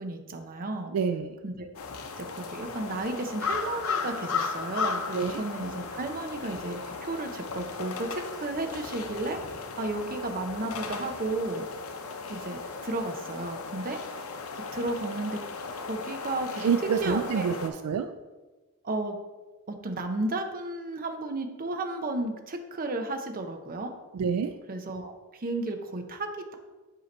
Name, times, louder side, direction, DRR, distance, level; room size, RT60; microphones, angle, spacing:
voice 1, 0.0-0.9 1.4-1.7 2.2-9.4 9.8-11.7 12.3-14.0 14.7-15.4 15.9-17.6 18.8-19.2 19.7-23.9 24.7-26.5, right 2 dB, 40° right, 6 dB, 0.7 m, -33 dB
voice 2, 0.9-1.4 5.1-5.4 16.6-18.1 24.1-24.5, right 6 dB, 80° right, 8 dB, 0.3 m, -27 dB
sound 1, 1.7-17.7, left 5 dB, 65° left, 0.6 m, -36 dB
7.7 x 2.9 x 5.2 m, 1.2 s
head